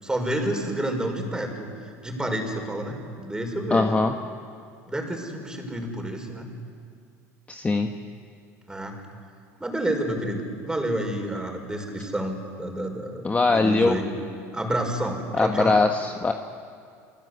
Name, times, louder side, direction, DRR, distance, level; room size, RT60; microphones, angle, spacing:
voice 1, 0.0-1.7 2.0-3.9 4.9-6.5 8.7-9.0 9.6-14.1 14.5-15.8, right 1 dB, 10° right, 3 dB, 5.5 m, -29 dB
voice 2, 3.7-4.1 7.5-7.9 13.2-14.0 15.3-16.3, left 3 dB, 20° left, 4 dB, 1.4 m, -21 dB
29.5 x 20.5 x 8.2 m, 2.3 s
supercardioid pair, 90°, 8 cm